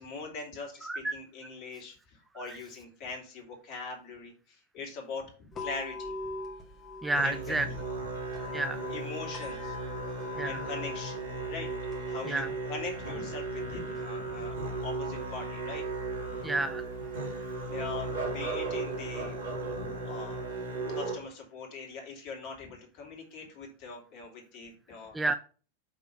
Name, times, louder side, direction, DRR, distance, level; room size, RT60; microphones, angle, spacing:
voice 1, 0.0-5.3 5.6-6.1 7.2-7.8 8.9-9.8 10.4-11.7 12.0-15.8 17.7-19.4 19.7-20.4 20.9-25.1, left 4 dB, 40° left, 0 dB, 2.5 m, -42 dB
voice 2, 0.8-1.2 2.5-2.6 7.0-7.7 8.5-8.9 10.4-10.6 12.3-12.5 16.4-16.8 25.1-25.3, right 2 dB, 10° right, 9 dB, 0.4 m, -30 dB
sound 1, 5.5-19.5, left 3 dB, 25° left, 1.6 m, -45 dB
Musical instrument, 7.1-21.1, right 3 dB, 70° right, 3.0 m, -36 dB
5.7 x 3.8 x 5.6 m, 0.39 s
figure-of-eight pair, 90°, 0 cm